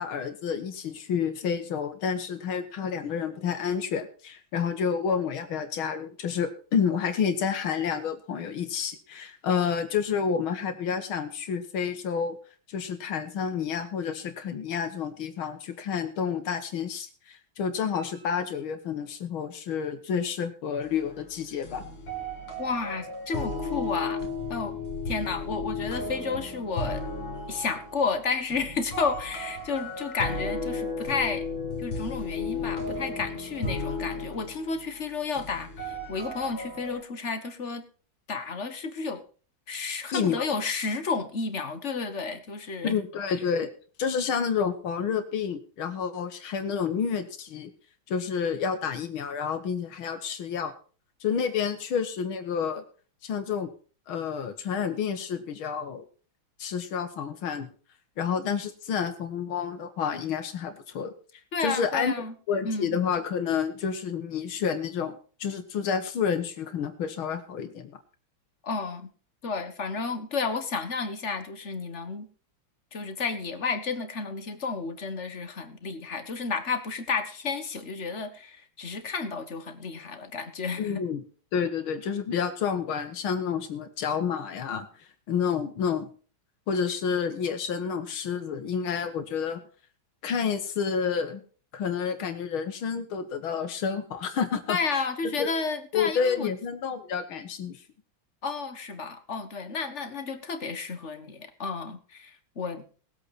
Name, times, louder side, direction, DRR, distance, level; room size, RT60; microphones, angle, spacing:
voice 1, 0.0-12.4 12.7-21.9 40.1-40.5 42.8-43.7 44.0-47.7 48.1-50.7 51.2-52.8 53.2-53.7 54.1-56.1 56.6-57.7 58.2-61.1 61.6-62.1 62.5-67.9 80.8-81.2 81.5-86.1 86.7-89.6 90.2-91.4 91.7-94.8 95.2-95.5 95.9-97.8, left 6 dB, 85° left, 7 dB, 2.3 m, -29 dB
sound 1, 17.9-19.3 22.1-22.2, equal, 85° right, 7.3 m, -59 dB
sound 2, 20.8-37.0, left 3 dB, 65° left, 3.1 m, -34 dB
voice 2, 22.6-24.8 25.1-27.0 27.5-31.5 31.8-37.9 38.3-39.2 39.7-42.9 61.5-62.3 62.6-63.0 68.6-69.1 69.4-72.3 72.9-81.0 94.7-96.5 98.4-102.9, left 4 dB, 40° left, 9 dB, 1.5 m, -32 dB
19.5 x 8.2 x 4.2 m, 0.39 s
omnidirectional pair, 2.2 m